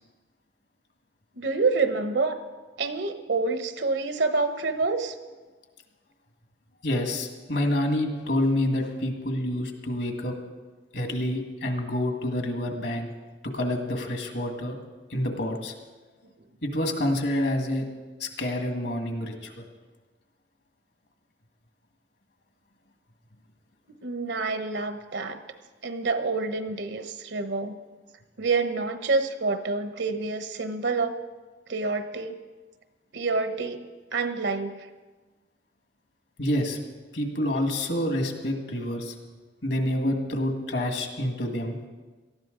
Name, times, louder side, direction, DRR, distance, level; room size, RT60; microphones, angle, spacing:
voice 1, 1.4-2.4 2.8-5.1 24.0-25.4 25.8-27.7 28.4-31.2 31.7-32.3 33.1-33.8 34.1-34.7, right 3 dB, 75° right, 8 dB, 1.1 m, -27 dB
voice 2, 6.8-10.3 10.9-13.1 13.5-14.8 15.1-15.7 16.6-17.8 18.2-19.6 36.4-36.8 37.1-39.1 39.6-41.8, left 1 dB, 65° left, 4 dB, 1.9 m, -28 dB
18.0 x 13.5 x 3.9 m, 1.3 s
head